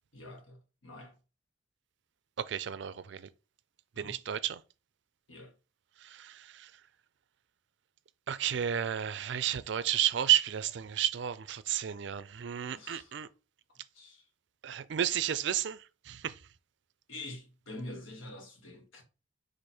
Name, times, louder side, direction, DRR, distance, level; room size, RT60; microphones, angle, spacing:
voice 1, 0.1-1.2 3.9-4.2 5.3-5.5 12.7-13.2 13.7-14.2 17.1-19.0, left 2 dB, 90° left, 1.4 m, -46 dB
voice 2, 2.4-3.3 4.0-4.6 6.0-6.7 8.3-13.3 14.6-15.8 16.1-16.4, right 10 dB, 60° right, 0.4 m, -32 dB
4.3 x 2.5 x 4.7 m
head